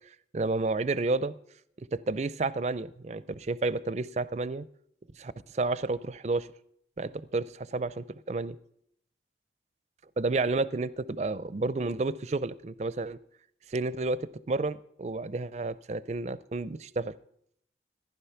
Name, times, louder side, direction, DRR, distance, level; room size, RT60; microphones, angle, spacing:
voice 1, 0.3-1.3 1.8-4.6 5.2-6.5 7.0-8.6 10.2-13.2 13.7-17.1, right 3 dB, 40° right, 18 dB, 0.4 m, -31 dB
14.5 x 10.5 x 5.7 m, 0.71 s
head